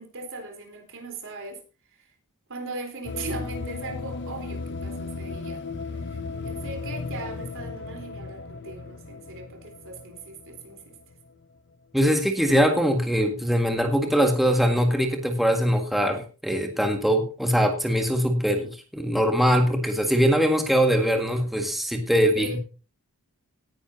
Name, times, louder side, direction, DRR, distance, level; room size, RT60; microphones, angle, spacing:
voice 1, 0.0-1.6 2.0-2.1 2.5-5.6 5.9-11.0 22.1-22.6, right 2 dB, 60° right, 3.8 m, -39 dB
sound 1, 3.0-11.3, left 3 dB, 50° left, 0.7 m, -35 dB
voice 2, 11.9-22.6, equal, ahead, 1.7 m, -22 dB
18.5 x 10.0 x 2.8 m
head